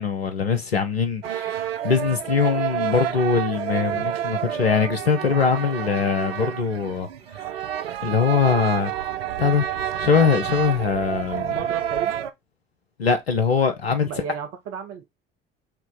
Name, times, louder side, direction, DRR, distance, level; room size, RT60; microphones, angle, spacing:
voice 1, 0.0-1.6 1.8-7.1 8.0-8.9 9.4-9.7 10.0-11.5 13.0-14.1, left 6 dB, 85° left, 0.7 m, -22 dB
sound 1, 1.2-12.3, right 10 dB, 80° right, 0.5 m, -29 dB
voice 2, 11.5-12.2 14.0-15.1, right 7 dB, 50° right, 0.9 m, -34 dB
4.5 x 2.9 x 3.8 m
figure-of-eight pair, 55°, 30 cm